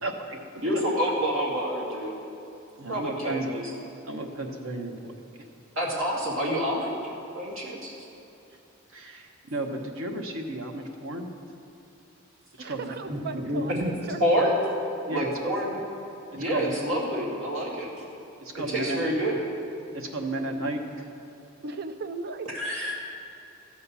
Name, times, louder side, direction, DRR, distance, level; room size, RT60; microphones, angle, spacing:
voice 1, 0.0-0.4 2.8-3.5 4.0-5.1 8.9-11.3 12.7-12.9 15.1-15.3 16.5-16.7 18.4-19.0 19.9-20.8, right 2 dB, 90° right, 3 dB, 1.2 m, -33 dB
voice 2, 0.6-2.1 2.9-3.7 5.8-6.9 7.3-7.9 13.1-13.9 14.2-14.6 15.1-15.8 16.3-17.9 18.7-19.4 22.5-22.9, equal, 75° right, -5 dB, 2.7 m, -27 dB
voice 3, 12.6-14.2 21.6-22.5, right 3 dB, 50° right, 8 dB, 0.6 m, -36 dB
14.5 x 6.6 x 5.6 m, 2.9 s
head